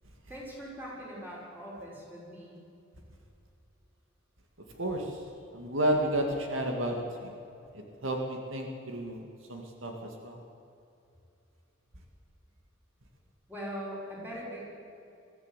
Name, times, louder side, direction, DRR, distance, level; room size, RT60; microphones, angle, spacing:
voice 1, 0.3-2.6 13.5-14.7, equal, 10° right, -5 dB, 5.9 m, -41 dB
voice 2, 4.8-5.2 5.5-7.3 7.7-10.4, right 1 dB, 75° right, 2 dB, 2.3 m, -32 dB
22.0 x 14.5 x 8.4 m, 2.7 s
head